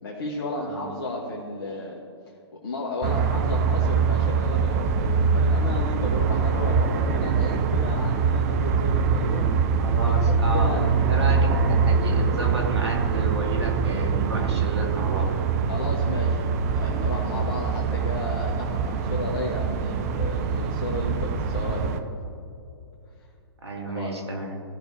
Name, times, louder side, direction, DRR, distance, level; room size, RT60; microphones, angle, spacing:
voice 1, 0.0-2.0 2.6-9.5 10.0-11.1 15.7-21.9 23.9-24.1, left 2 dB, 50° left, -3 dB, 1.4 m, -33 dB
sound 1, 3.0-22.0, right 5 dB, 35° right, 0.7 m, -23 dB
voice 2, 9.8-15.3 23.6-24.6, right 2 dB, 75° right, 0 dB, 2.1 m, -31 dB
16.0 x 6.3 x 2.8 m, 2.6 s
figure-of-eight pair, 125°, 14 cm